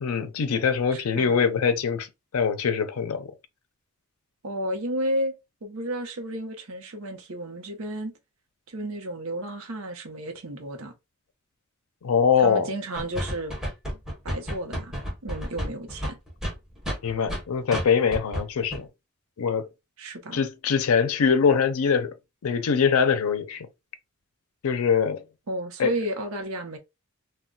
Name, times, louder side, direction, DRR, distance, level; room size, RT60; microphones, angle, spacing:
voice 1, 0.0-2.1 2.3-3.3 12.0-12.7 17.0-18.9 19.4-19.7 20.3-22.1 22.4-23.7 24.6-25.2 25.8-25.9, left 6 dB, 85° left, 0.5 m, -23 dB
voice 2, 0.9-1.4 4.4-5.3 5.6-8.2 8.7-10.9 12.4-13.5 14.2-14.9 15.2-16.2 20.0-20.4 25.5-26.8, right 1 dB, 75° right, 0.8 m, -32 dB
sound 1, 13.0-17.4 17.7-17.9 18.1-18.4 18.7-18.8, equal, ahead, 1.1 m, -31 dB
2.2 x 2.2 x 3.8 m
head